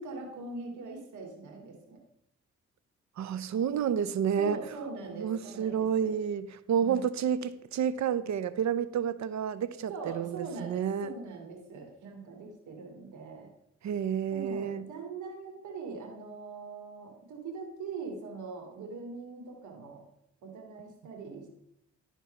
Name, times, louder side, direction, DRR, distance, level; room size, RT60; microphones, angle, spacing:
voice 1, 0.0-2.0 4.4-6.1 6.8-7.0 9.9-13.5 14.3-20.0 20.4-21.5, right 4 dB, 90° right, 2 dB, 2.5 m, -42 dB
voice 2, 3.2-4.6 5.0-11.1 13.8-14.8, right 8 dB, 70° right, 15 dB, 0.7 m, -30 dB
12.0 x 4.5 x 5.7 m, 0.77 s
cardioid pair, 75°, 29 cm